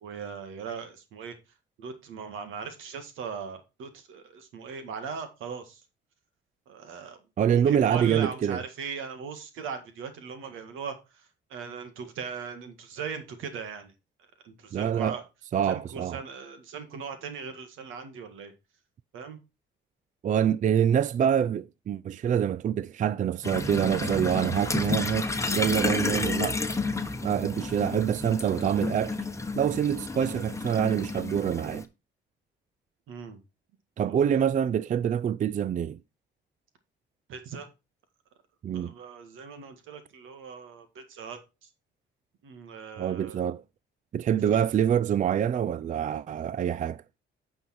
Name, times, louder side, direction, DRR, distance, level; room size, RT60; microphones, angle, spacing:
voice 1, 0.0-1.4 1.8-5.8 6.7-7.2 7.5-13.9 14.4-15.2 15.7-18.5 19.1-19.4 33.1-33.4 34.0-34.2 37.3-37.7 38.7-41.7 42.4-43.4, right 6 dB, 85° right, 1.9 m, -39 dB
voice 2, 7.4-8.6 14.7-15.2 15.5-16.2 20.2-26.6 27.2-29.2 29.6-31.9 34.0-36.0 38.6-38.9 43.0-43.6 44.1-47.0, right 9 dB, 40° right, 0.4 m, -26 dB
sound 1, 23.4-31.8, left 3 dB, 15° left, 1.1 m, -31 dB
9.4 x 5.6 x 4.2 m
cardioid pair, 90°, 20 cm